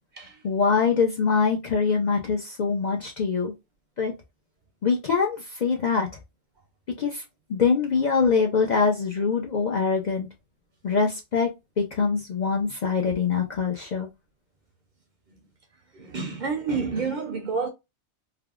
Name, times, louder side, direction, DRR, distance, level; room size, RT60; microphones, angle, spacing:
voice 1, 0.4-3.5 4.0-4.1 4.8-6.1 7.0-7.2 7.5-10.3 10.8-11.5 11.8-14.1, left 5 dB, 55° left, 0.5 m, -23 dB
voice 2, 15.9-17.7, right 5 dB, 55° right, 0.6 m, -29 dB
3.4 x 2.3 x 2.3 m
omnidirectional pair, 1.2 m